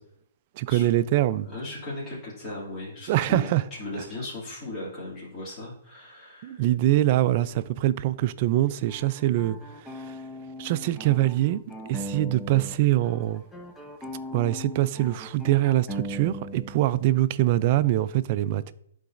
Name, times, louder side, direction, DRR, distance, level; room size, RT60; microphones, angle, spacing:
voice 1, 0.6-1.5 3.1-3.6 6.4-10.2 10.6-11.6 11.9-13.4 14.3-18.7, right 14 dB, 40° right, 0.3 m, -24 dB
voice 2, 1.4-3.5 3.8-6.6, left 2 dB, 25° left, 2.4 m, -37 dB
sound 1, 8.9-12.8 13.0-16.9, equal, 5° left, 0.6 m, -39 dB
11.5 x 3.9 x 2.5 m
hypercardioid pair, 155°, 0 cm